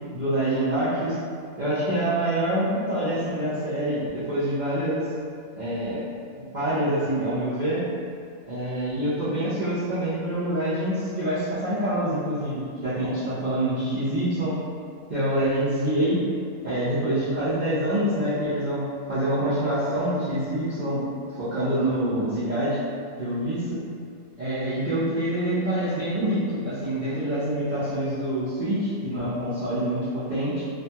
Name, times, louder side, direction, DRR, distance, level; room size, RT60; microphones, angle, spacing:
voice 1, 0.1-1.2 1.6-5.1 5.5-6.0 6.5-7.8 8.5-14.6 15.1-16.2 16.6-18.8 19.1-21.0 21.4-22.8 23.2-23.8 24.4-30.6, right 1 dB, 50° right, -14 dB, 0.5 m, -26 dB
2.5 x 2.3 x 2.7 m, 2.3 s
omnidirectional pair, 1.5 m